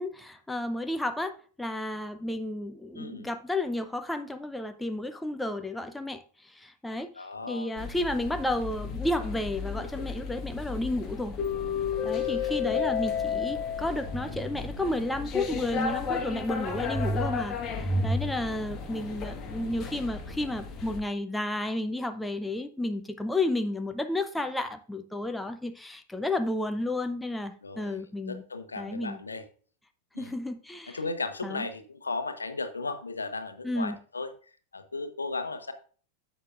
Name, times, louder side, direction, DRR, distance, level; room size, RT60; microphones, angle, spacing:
voice 1, 0.0-11.4 12.0-28.4 28.8-29.2 30.2-31.0 31.4-31.7 33.6-34.0, left 1 dB, 5° left, 8 dB, 0.7 m, -32 dB
voice 2, 2.9-3.3 7.2-7.7 12.2-12.9 27.6-29.4 30.1-30.3 30.9-34.3 34.7-35.7, left 3 dB, 75° left, 9 dB, 0.9 m, -36 dB
sound 1, 7.8-21.0, left 4 dB, 25° left, 1.6 m, -32 dB
11.0 x 7.9 x 2.5 m, 0.41 s
figure-of-eight pair, 90°, 0 cm